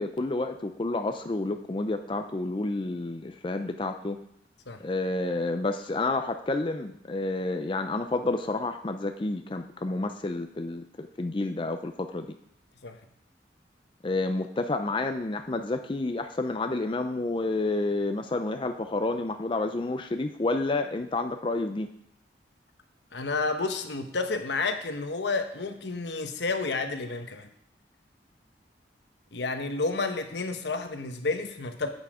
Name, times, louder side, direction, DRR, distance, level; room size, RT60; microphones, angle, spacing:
voice 1, 0.0-4.2 4.8-12.4 14.0-21.9, left 2 dB, 30° left, 7 dB, 0.4 m, -30 dB
voice 2, 23.1-27.5 29.3-31.9, left 3 dB, 80° left, 7 dB, 1.0 m, -30 dB
8.3 x 7.6 x 4.9 m, 0.72 s
head